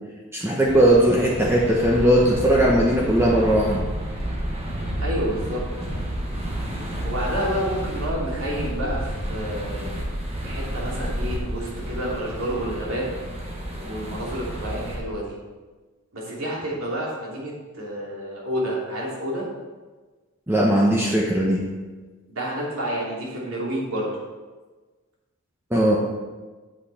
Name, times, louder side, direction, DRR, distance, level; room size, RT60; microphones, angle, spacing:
voice 1, 0.3-3.8 20.5-21.7 25.7-26.0, right 1 dB, 10° right, -3 dB, 0.9 m, -19 dB
sound 1, 0.6-15.0, right 1 dB, 30° right, 1.4 m, -30 dB
voice 2, 5.0-5.6 7.0-10.2 10.4-13.0 13.8-15.3 16.1-19.5 22.3-24.1, equal, 75° right, -4 dB, 2.9 m, -29 dB
8.3 x 8.2 x 4.2 m, 1.3 s
head